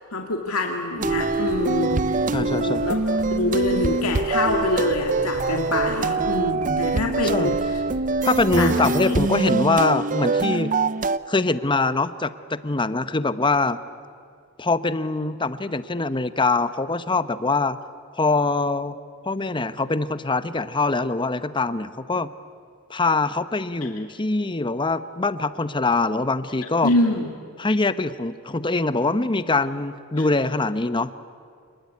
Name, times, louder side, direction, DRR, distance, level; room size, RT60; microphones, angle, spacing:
voice 1, 0.1-2.0 2.3-3.0 3.2-7.8 8.6-9.2 26.8-27.3 30.1-30.2, left 2 dB, 85° left, 2 dB, 2.3 m, -25 dB
sound 1, 1.0-11.2, right 3 dB, 35° right, 0.6 m, -24 dB
sound 2, 1.0-8.7, equal, 85° right, 3.7 m, -39 dB
voice 2, 2.3-2.8 7.3-7.5 8.2-10.7 11.3-13.8 14.6-17.8 18.1-19.0 19.2-22.3 22.9-26.9 27.6-31.1, left 3 dB, 20° left, 13 dB, 0.8 m, -23 dB
27.5 x 21.0 x 9.6 m, 2.2 s
head